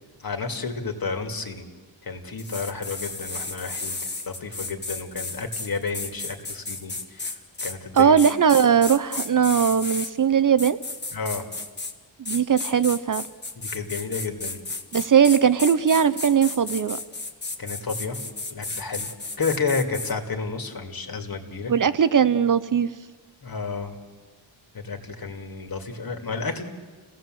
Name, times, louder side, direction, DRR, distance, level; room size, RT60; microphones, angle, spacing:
voice 1, 0.2-1.7 2.0-8.2 11.1-11.4 13.6-14.6 17.6-18.2 18.5-21.7 23.4-23.9 24.7-26.6, left 4 dB, 50° left, 5 dB, 2.4 m, -31 dB
sound 1, 2.4-10.1 10.6-11.9 12.2-20.1, left 3 dB, 20° left, 1.5 m, -33 dB
voice 2, 7.9-10.8 12.2-13.3 14.9-17.0 21.7-22.9, right 7 dB, 45° right, 13 dB, 0.6 m, -19 dB
28.5 x 17.0 x 7.7 m, 1.4 s
wide cardioid pair, 135°, 46 cm